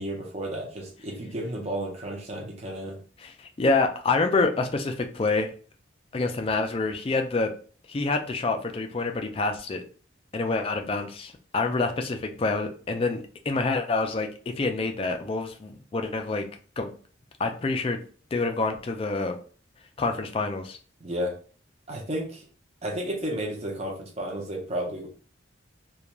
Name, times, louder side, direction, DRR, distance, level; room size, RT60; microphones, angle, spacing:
voice 1, 0.0-3.0 21.0-21.4 21.9-22.5 22.8-25.1, right 1 dB, 30° right, -1 dB, 0.5 m, -32 dB
voice 2, 3.2-5.5 6.1-7.5 7.9-9.8 10.3-14.3 14.6-16.5 16.8-16.9 17.4-18.0 18.3-19.3 20.0-20.8, left 3 dB, 30° left, 5 dB, 0.3 m, -27 dB
2.4 x 2.2 x 2.9 m, 0.41 s
head